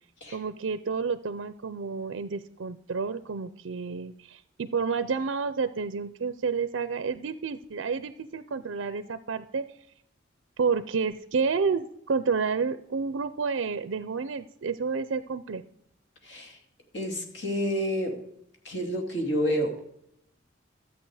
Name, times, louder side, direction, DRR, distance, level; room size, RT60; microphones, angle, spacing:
voice 1, 0.3-9.6 10.6-15.6, right 5 dB, 80° right, 13 dB, 0.5 m, -30 dB
voice 2, 16.2-16.6 16.9-18.2 18.6-19.8, equal, 60° left, 2 dB, 2.5 m, -29 dB
13.0 x 8.3 x 4.8 m, 0.78 s
head